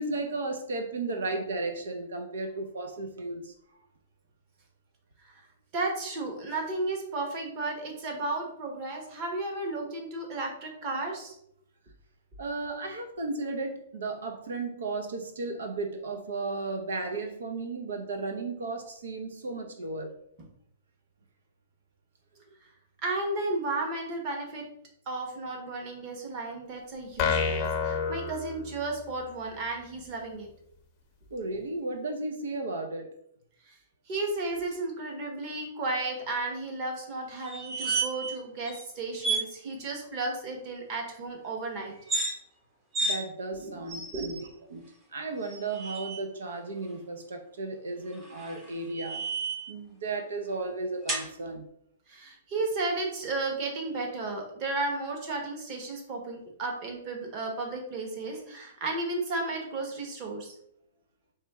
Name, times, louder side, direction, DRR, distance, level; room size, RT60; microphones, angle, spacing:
voice 1, 0.0-3.5 12.4-20.1 31.3-33.1 43.0-44.8 45.1-49.2 49.7-51.7, right 3 dB, 90° right, 5 dB, 0.7 m, -34 dB
voice 2, 5.7-11.3 23.0-24.6 25.1-30.5 33.7-33.8 34.1-41.9 43.5-43.7 44.1-44.4 52.1-60.5, right 2 dB, 30° right, 1 dB, 1.1 m, -33 dB
sound 1, 27.2-29.1, left 5 dB, 25° left, 0.6 m, -29 dB
sound 2, 37.5-38.4 38.7-38.8 39.2-39.5 41.9-42.3 42.9-43.2 43.9-44.5 45.4-46.2 48.1-49.7 51.1-51.3, right 3 dB, 15° right, 0.7 m, -32 dB
4.3 x 3.1 x 3.5 m, 0.72 s
hypercardioid pair, 160°, 0 cm